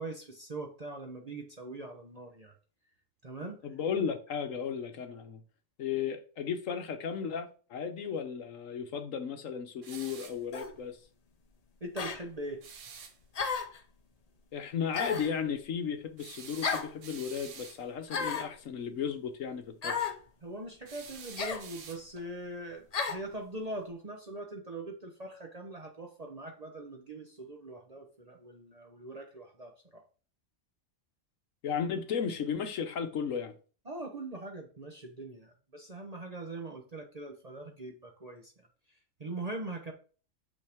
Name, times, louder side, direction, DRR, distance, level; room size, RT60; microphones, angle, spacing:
voice 1, 0.0-2.5 3.2-3.6 11.8-12.6 20.4-30.0 33.9-38.5 39.2-39.9, right 2 dB, 35° right, 0.8 m, -42 dB
voice 2, 3.4-5.4 5.8-11.0 14.5-19.9 31.6-33.5, left 7 dB, 65° left, 1.2 m, -35 dB
sound 1, 9.8-10.4 12.6-13.2 16.2-17.8 20.9-22.3, right 6 dB, 60° right, 1.2 m, -48 dB
sound 2, 10.5-10.7 12.0-12.2 13.3-13.8 14.9-15.4 16.6-16.9 18.1-18.5 19.8-20.2 21.4-21.7 22.9-23.2, left 5 dB, 45° left, 0.5 m, -33 dB
6.4 x 5.4 x 3.5 m
omnidirectional pair, 1.5 m